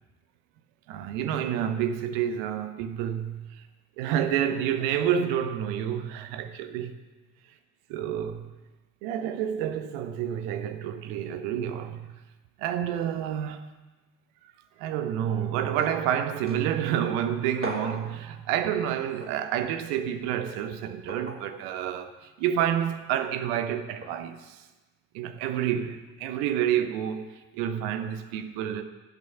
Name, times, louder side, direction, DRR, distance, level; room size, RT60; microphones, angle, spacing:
voice 1, 0.9-3.6 4.0-7.0 7.9-8.5 9.0-12.0 12.6-13.6 14.8-24.6 25.1-28.8, right 9 dB, 60° right, 1.0 m, -29 dB
sound 1, 15.8-16.1 16.5-16.6 17.6-18.1 19.2-19.4 21.1-21.4 22.6-22.8 24.0-24.2, right 1 dB, 25° right, 3.2 m, -36 dB
17.0 x 6.3 x 5.7 m
figure-of-eight pair, 45°, 48 cm